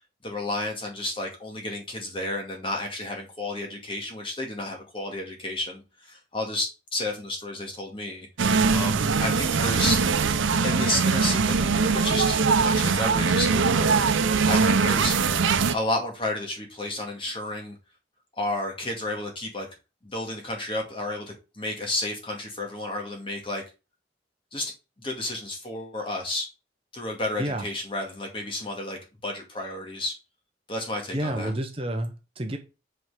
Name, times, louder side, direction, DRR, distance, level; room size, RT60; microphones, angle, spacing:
voice 1, 0.2-8.3 8.7-10.0 10.6-15.2 15.7-17.7 18.4-19.7 20.0-23.6 24.5-24.7 25.0-26.5 26.9-30.1 30.7-31.5, left 2 dB, 25° left, 1 dB, 2.1 m, -31 dB
sound 1, 8.4-15.7, right 5 dB, 85° right, 0.7 m, -22 dB
voice 2, 31.1-32.6, right 1 dB, 30° right, 4 dB, 0.9 m, -29 dB
8.1 x 4.6 x 4.9 m, 0.30 s
head